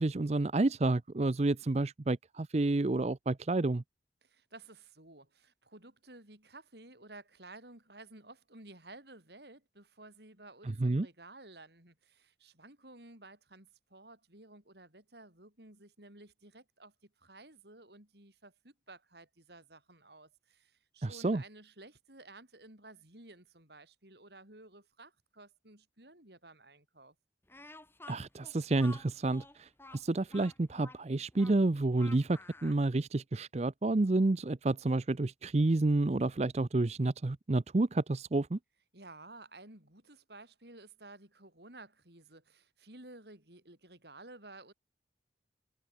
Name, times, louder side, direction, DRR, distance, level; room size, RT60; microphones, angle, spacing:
voice 1, 0.0-3.8 10.8-11.1 21.0-21.4 28.1-38.6, right 2 dB, 35° right, 0.5 m, -30 dB
voice 2, 4.2-27.1 38.9-44.7, right 2 dB, 65° right, 6.6 m, -54 dB
Speech, 27.5-32.8, left 2 dB, 10° left, 7.0 m, -52 dB
head